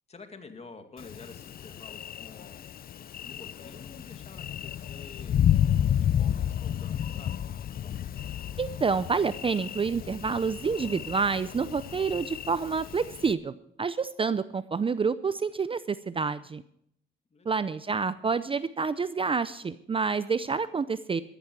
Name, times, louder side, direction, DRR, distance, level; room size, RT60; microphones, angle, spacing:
voice 1, 0.1-2.7 3.0-5.4 6.0-7.4 7.7-8.1 17.3-17.7, left 4 dB, 30° left, 6 dB, 2.3 m, -49 dB
Thunder, 1.0-13.3, left 10 dB, 50° left, 0.5 m, -31 dB
voice 2, 8.6-13.5 13.8-16.6 17.5-21.2, right 5 dB, 25° right, 14 dB, 0.6 m, -28 dB
14.0 x 13.0 x 4.7 m, 0.72 s
cardioid pair, 90°, 20 cm